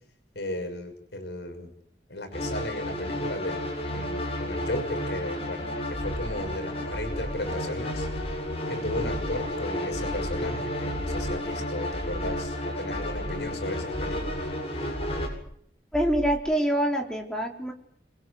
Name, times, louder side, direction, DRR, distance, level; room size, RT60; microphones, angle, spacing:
voice 1, 0.3-1.7 2.1-3.7 3.9-8.1 8.7-14.4, left 1 dB, 70° left, 5 dB, 6.2 m, -35 dB
sound 1, 2.3-15.3, left 1 dB, 35° left, 7.9 m, -32 dB
sound 2, 5.9-6.6 6.9-7.6 7.9-8.6 8.9-9.6 9.9-10.6 10.9-11.6 11.9-12.6 12.9-13.6 13.9-14.6 14.9-15.6 15.9-16.6, equal, 20° right, 2.9 m, -37 dB
voice 2, 15.9-17.7, right 1 dB, 5° left, 1 dB, 4.2 m, -25 dB
26.5 x 23.0 x 8.0 m, 0.67 s
head